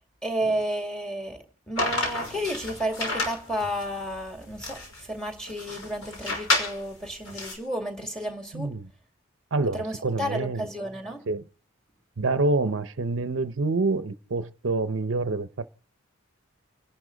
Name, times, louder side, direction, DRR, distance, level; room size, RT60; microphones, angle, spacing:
voice 1, 0.2-8.7 9.7-11.2, equal, 5° left, 2.3 m, -32 dB
sound 1, 1.8-7.5, left 2 dB, 80° left, 5.9 m, -31 dB
voice 2, 8.5-8.9 9.5-10.7 11.3-11.4 12.2-15.7, right 3 dB, 65° right, 0.7 m, -27 dB
29.5 x 11.5 x 3.9 m
head